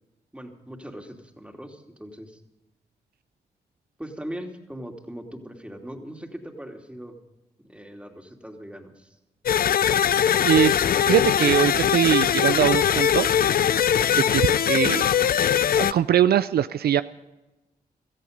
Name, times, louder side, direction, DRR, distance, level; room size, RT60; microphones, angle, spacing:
voice 1, 0.3-2.4 4.0-7.2 7.6-9.2, equal, 5° right, 3 dB, 2.8 m, -40 dB
sound 1, 9.5-15.9, left 9 dB, 60° left, 0.5 m, -21 dB
voice 2, 11.1-13.3 14.2-15.1 15.8-17.0, right 10 dB, 65° right, 14 dB, 0.5 m, -21 dB
17.5 x 14.0 x 5.3 m, 1.0 s
supercardioid pair, 40°, 17 cm